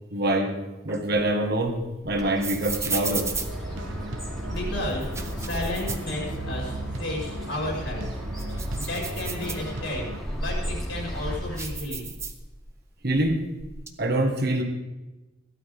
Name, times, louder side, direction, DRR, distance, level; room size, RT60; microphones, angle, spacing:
voice 1, 0.1-0.6 0.8-3.3 13.0-13.4 14.0-14.6, right 1 dB, 55° right, 4 dB, 1.7 m, -25 dB
sound 1, 0.9-4.3 4.9-6.7 7.1-7.2 7.7-10.1 10.6-12.8 13.1-13.9, right 4 dB, 15° right, 0.8 m, -36 dB
Bird, 2.1-11.9, equal, ahead, 2.7 m, -35 dB
sound 2, 3.5-10.2, right 2 dB, 80° right, 1.0 m, -37 dB
voice 2, 4.5-5.1 5.3-8.0 8.7-12.1, left 1 dB, 75° left, -2 dB, 5.3 m, -33 dB
16.5 x 12.0 x 3.6 m, 1.1 s
head